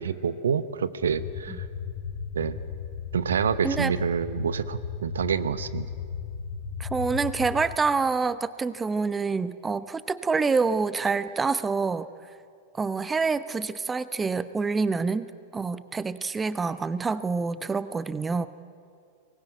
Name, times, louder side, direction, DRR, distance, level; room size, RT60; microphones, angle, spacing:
voice 1, 0.0-1.6 2.3-2.6 3.1-5.9, right 7 dB, 65° right, 15 dB, 0.8 m, -27 dB
sound 1, 1.0-7.8, left 6 dB, 50° left, 2.4 m, -36 dB
voice 2, 6.8-12.1 12.8-15.3 15.5-18.5, right 4 dB, 15° right, 15 dB, 0.7 m, -27 dB
23.5 x 20.0 x 9.2 m, 2.3 s
figure-of-eight pair, 90°, 0 cm